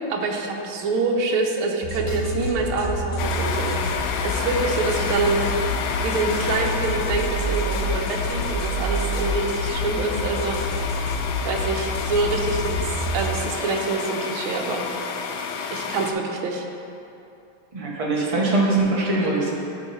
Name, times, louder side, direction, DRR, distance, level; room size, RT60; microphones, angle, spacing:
voice 1, 0.1-3.8 4.2-5.4 6.0-10.8 11.4-14.8 15.7-16.7, right 3 dB, 80° right, 1 dB, 1.6 m, -26 dB
sound 1, 1.8-13.3, left 1 dB, 65° left, 1.2 m, -28 dB
sound 2, 3.2-16.1, left 5 dB, 80° left, 0.9 m, -30 dB
voice 2, 17.7-19.5, right 2 dB, 25° right, -4 dB, 0.7 m, -22 dB
11.5 x 3.9 x 4.2 m, 2.7 s
omnidirectional pair, 2.3 m